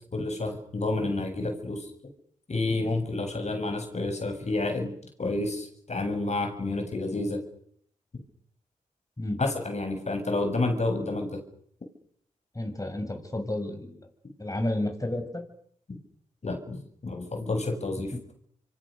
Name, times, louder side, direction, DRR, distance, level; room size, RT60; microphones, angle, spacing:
voice 1, 0.1-1.9 2.5-4.9 5.2-7.4 8.1-8.2 9.4-11.4 16.4-18.1, left 2 dB, 50° left, 5 dB, 7.9 m, -29 dB
voice 2, 12.5-14.0 14.4-15.4, left 1 dB, 25° left, 5 dB, 7.4 m, -31 dB
26.5 x 25.0 x 6.7 m, 0.66 s
cardioid pair, 45°, 15 cm